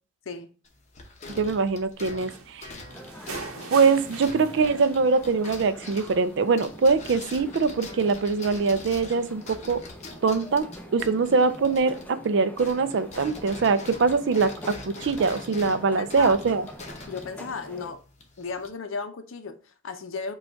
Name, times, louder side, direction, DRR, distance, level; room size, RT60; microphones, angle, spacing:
sound 1, 0.7-12.3 12.5-18.7, left 2 dB, 35° left, 0.8 m, -43 dB
voice 1, 1.4-2.7 3.7-9.8 10.2-10.7 10.9-16.7, right 4 dB, 55° right, 0.4 m, -23 dB
sound 2, 2.3-5.2 5.4-6.4 7.3-7.4, right 4 dB, 90° right, 0.8 m, -41 dB
sound 3, 2.9-17.9, equal, 5° left, 0.5 m, -44 dB
voice 2, 16.0-16.4 17.1-18.0 18.4-20.3, left 4 dB, 70° left, 0.6 m, -35 dB
5.1 x 2.4 x 4.5 m
head